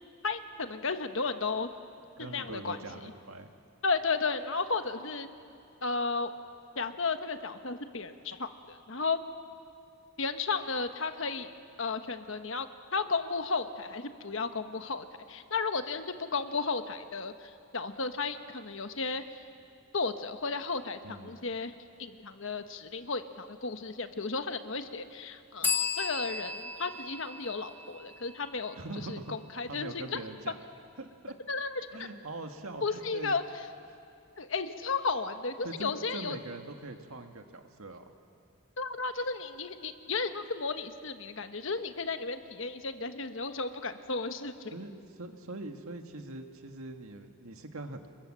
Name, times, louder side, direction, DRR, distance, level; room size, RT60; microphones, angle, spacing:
voice 1, 0.2-1.7 2.2-2.8 3.8-5.3 5.8-6.3 6.7-9.2 10.2-11.5 11.8-19.2 19.9-28.8 29.1-30.2 31.5-32.1 32.8-33.4 34.4-36.4 38.8-44.7, left 4 dB, 60° left, 8 dB, 1.3 m, -34 dB
voice 2, 2.2-3.5 21.0-21.4 28.7-29.3 29.7-30.6 31.0-31.3 31.9-33.3 35.6-38.0 44.7-48.1, right 2 dB, 75° right, 5 dB, 1.8 m, -42 dB
sound 1, 25.6-29.2, left 5 dB, 10° left, 1.0 m, -35 dB
29.0 x 22.5 x 7.6 m, 2.5 s
head